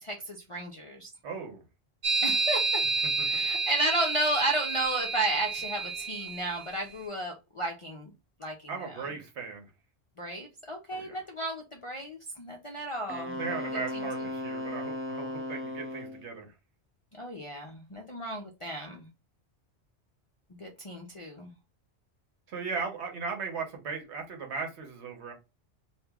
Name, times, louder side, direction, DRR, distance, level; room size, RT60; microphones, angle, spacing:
voice 1, 0.0-1.1 2.2-2.8 3.3-8.1 8.4-9.0 10.2-14.1 17.2-19.1 20.6-21.5, right 1 dB, 45° left, 1 dB, 0.4 m, -33 dB
voice 2, 1.2-1.6 3.2-3.3 8.7-9.7 10.9-11.1 13.3-16.5 22.5-25.3, right 5 dB, 75° right, 4 dB, 1.1 m, -37 dB
sound 1, 2.0-6.7, right 4 dB, 50° right, 0.9 m, -30 dB
Wind instrument woodwind instrument, 13.1-16.2, left 1 dB, 20° right, 0.4 m, -36 dB
2.9 x 2.5 x 3.4 m, 0.27 s
omnidirectional pair, 1.2 m